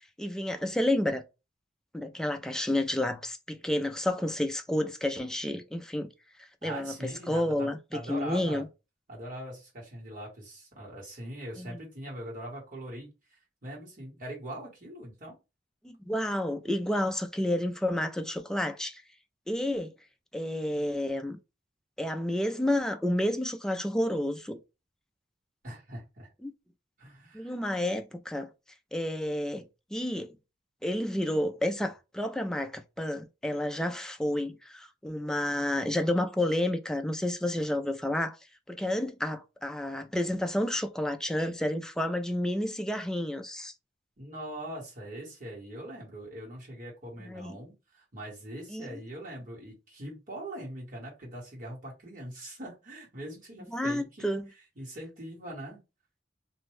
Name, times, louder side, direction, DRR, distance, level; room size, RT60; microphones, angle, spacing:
voice 1, 0.2-1.2 1.9-6.1 6.4-8.7 11.6-11.8 15.8-19.0 19.5-19.9 20.3-21.4 22.0-24.6 26.4-26.5 27.3-28.5 28.9-29.7 29.9-30.4 30.8-38.4 38.7-43.7 47.2-47.5 48.7-48.9 53.7-54.5, left 1 dB, 5° left, 0.3 m, -30 dB
voice 2, 6.6-8.6 9.1-15.3 25.6-26.3 27.0-27.6 44.2-54.3 54.8-55.8, right 1 dB, 50° right, 1.4 m, -42 dB
2.6 x 2.1 x 3.2 m
head